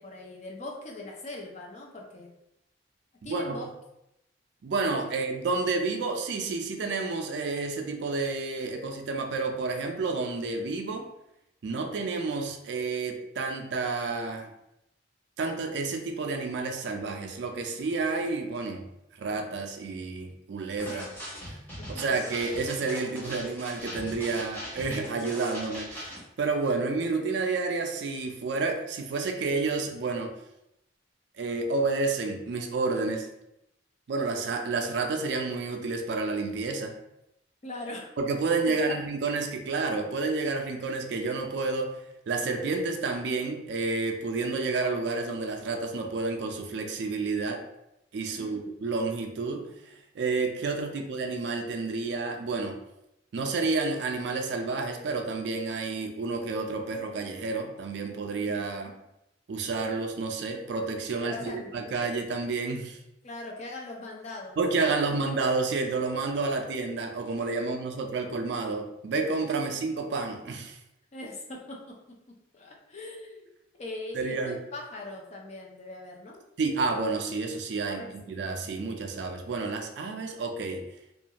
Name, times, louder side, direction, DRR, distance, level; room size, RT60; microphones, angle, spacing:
voice 1, 0.0-2.3 3.2-3.7 20.9-21.1 21.8-21.9 37.6-38.1 38.9-39.0 48.3-48.6 50.9-51.0 58.4-59.0 61.2-61.7 63.2-64.6 65.1-65.2 69.6-69.8 71.1-71.9 72.5-76.4 77.8-78.3, left 2 dB, 40° left, -1 dB, 0.5 m, -41 dB
voice 2, 3.2-3.7 4.6-11.1 11.6-14.5 15.4-18.9 19.2-21.0 21.9-30.3 31.4-33.3 34.1-37.0 38.2-42.0 42.3-47.6 48.1-52.8 53.3-58.9 59.5-63.0 64.6-70.8 74.1-74.6 76.6-78.0 78.3-80.8, right 3 dB, 65° right, 4 dB, 0.4 m, -30 dB
sound 1, 20.8-26.2, equal, 10° left, 0.9 m, -40 dB
2.4 x 2.3 x 2.8 m, 0.84 s
head